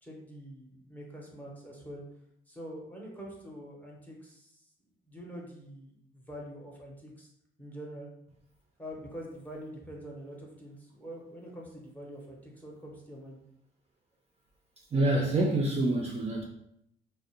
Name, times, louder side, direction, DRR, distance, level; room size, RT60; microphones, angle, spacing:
voice 1, 0.0-2.0 2.5-4.7 5.1-7.3 7.6-8.1 8.8-13.4, equal, 10° left, -2 dB, 0.7 m, -45 dB
voice 2, 14.9-16.4, right 2 dB, 30° right, -1 dB, 0.4 m, -26 dB
2.4 x 2.0 x 2.8 m, 0.76 s
cardioid pair, 90°, 20 cm